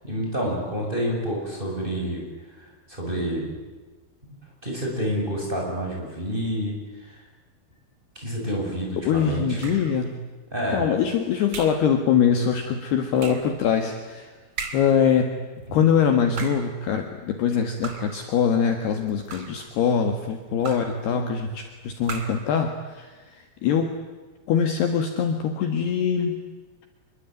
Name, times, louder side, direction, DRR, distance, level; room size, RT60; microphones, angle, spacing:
voice 1, 0.0-2.2 2.6-3.5 4.2-4.4 4.6-6.8 7.0-7.2 8.2-9.6 10.5-10.8 15.7-15.8, equal, 10° right, -1 dB, 7.3 m, -28 dB
voice 2, 9.0-10.2 10.7-14.3 14.7-15.4 15.7-23.9 24.5-26.4, left 7 dB, 65° left, 6 dB, 3.2 m, -23 dB
sound 1, 9.6-10.0 11.5-11.9 13.2-13.6 14.6-15.0 16.2-16.8 17.8-18.2 19.1-19.7 20.6-21.0 22.0-22.5, right 5 dB, 35° right, 3.0 m, -36 dB
26.0 x 23.0 x 9.3 m, 1.3 s
omnidirectional pair, 5.7 m